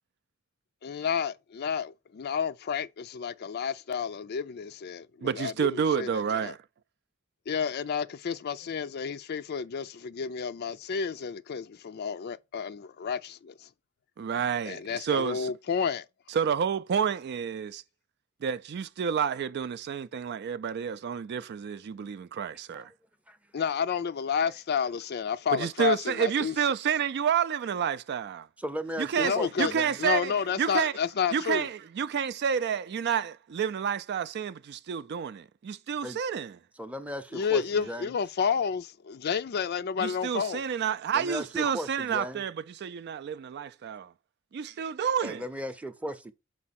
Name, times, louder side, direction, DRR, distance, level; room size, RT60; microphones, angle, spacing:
voice 1, 0.8-6.5 7.5-13.7 14.7-16.1 23.5-26.6 29.1-29.7 30.0-31.7 37.3-40.6, left 6 dB, 50° left, 0.4 m, -30 dB
voice 2, 5.2-6.6 14.2-15.5 16.3-17.8 18.4-22.9 25.5-28.5 29.0-30.3 30.6-30.9 31.3-36.6 40.0-44.1 44.5-45.4, right 7 dB, 55° right, 0.3 m, -29 dB
voice 3, 28.6-30.0 36.0-36.2 36.8-38.1 41.1-42.4 45.2-46.3, equal, 5° right, 0.6 m, -36 dB
6.0 x 4.6 x 4.2 m
head